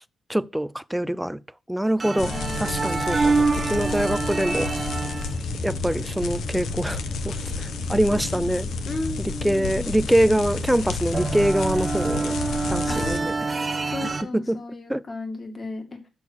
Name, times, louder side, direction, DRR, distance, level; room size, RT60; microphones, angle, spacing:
voice 1, 0.3-1.4 1.7-4.7 5.6-8.7 9.2-12.3 12.7-13.3 14.3-14.6 14.9-15.0, right 1 dB, 5° right, 0.5 m, -24 dB
voice 2, 2.0-3.0 8.1-8.5 8.9-10.0 12.9-13.0 13.8-15.8, left 2 dB, 35° left, 2.1 m, -35 dB
sound 1, 2.0-14.2, right 3 dB, 25° right, 1.0 m, -29 dB
sound 2, 2.2-13.2, left 4 dB, 85° left, 1.2 m, -31 dB
7.0 x 6.6 x 6.3 m
cardioid pair, 110°, 0 cm